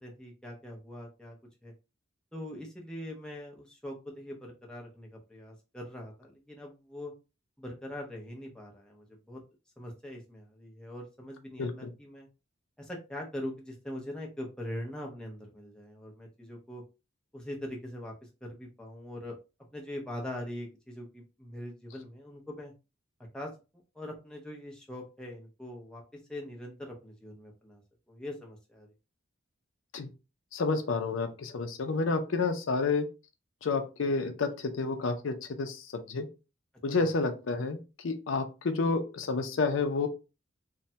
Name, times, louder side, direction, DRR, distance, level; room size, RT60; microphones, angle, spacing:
voice 1, 0.0-1.4 1.6-1.7 2.3-7.1 7.6-9.4 9.8-12.3 12.8-16.8 17.3-18.1 18.4-19.3 19.7-22.7 23.3-23.5 23.9-27.8 28.1-28.9, left 1 dB, 5° left, -1 dB, 0.6 m, -42 dB
voice 2, 11.6-11.9 29.9-30.1 30.5-33.1 33.6-36.3 36.8-37.8 38.0-40.1, left 4 dB, 75° left, 7 dB, 0.5 m, -30 dB
3.1 x 2.2 x 2.7 m, 0.30 s
head